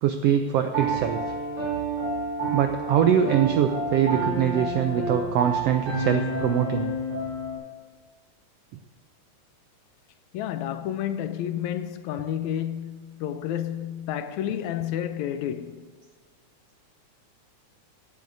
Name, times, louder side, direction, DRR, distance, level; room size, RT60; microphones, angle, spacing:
voice 1, 0.0-1.2 2.5-6.9, right 9 dB, 85° right, 1.4 m, -23 dB
Piano, 0.7-7.6, right 2 dB, 50° right, 3.9 m, -29 dB
voice 2, 10.3-15.9, left 10 dB, 80° left, 1.9 m, -30 dB
17.0 x 10.5 x 2.6 m
omnidirectional pair, 3.4 m